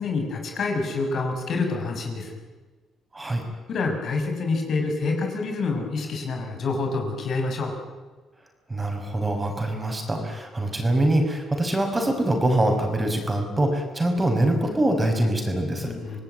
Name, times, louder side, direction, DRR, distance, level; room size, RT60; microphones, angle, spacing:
voice 1, 0.0-2.4 3.7-7.7 15.8-16.2, left 3 dB, 60° left, 3 dB, 6.2 m, -27 dB
voice 2, 3.1-3.4 8.7-15.9, right 1 dB, 20° right, 4 dB, 6.2 m, -24 dB
27.0 x 18.5 x 9.4 m, 1.3 s
cardioid pair, 95°, 0 cm